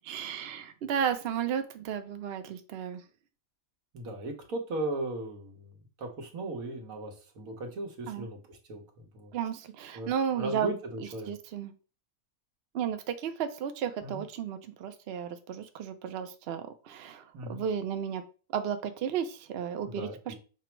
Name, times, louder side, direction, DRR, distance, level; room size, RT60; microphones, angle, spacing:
voice 1, 0.0-3.0 8.1-8.3 9.3-10.7 11.3-11.7 12.7-17.2 17.5-18.2 18.5-20.3, right 8 dB, 60° right, 8 dB, 0.7 m, -33 dB
voice 2, 3.9-9.3 9.9-11.3 14.0-14.2 17.3-17.6 19.8-20.3, right 2 dB, 80° right, 2 dB, 1.4 m, -37 dB
6.0 x 2.0 x 4.4 m, 0.36 s
omnidirectional pair, 1.5 m